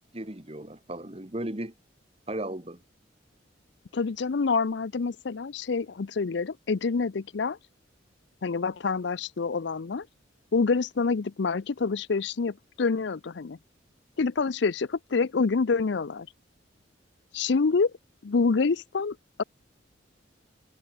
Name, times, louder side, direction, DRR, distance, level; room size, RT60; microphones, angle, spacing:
voice 1, 0.1-1.7 2.3-2.8, right 1 dB, 30° right, 1.9 m, -35 dB
voice 2, 3.9-7.6 8.4-10.1 10.5-13.6 14.2-16.3 17.3-17.9 18.2-19.4, left 4 dB, 65° left, 0.5 m, -27 dB
head